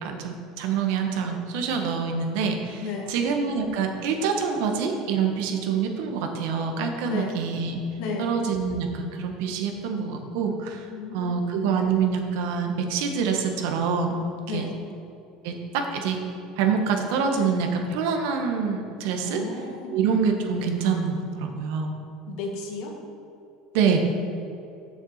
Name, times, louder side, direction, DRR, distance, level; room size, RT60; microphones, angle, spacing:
voice 1, 0.0-7.8 8.2-14.1 14.5-14.6 15.4-16.2 16.6-19.4 19.9-21.9 23.7-24.0, right 6 dB, 75° right, 3 dB, 1.5 m, -26 dB
voice 2, 2.8-3.2 7.0-7.4 8.0-8.3 10.9-11.4 14.5-14.8 19.2-20.0 22.3-22.9, left 4 dB, 70° left, 1 dB, 1.8 m, -33 dB
7.2 x 6.9 x 7.4 m, 2.7 s
supercardioid pair, 130°, 0 cm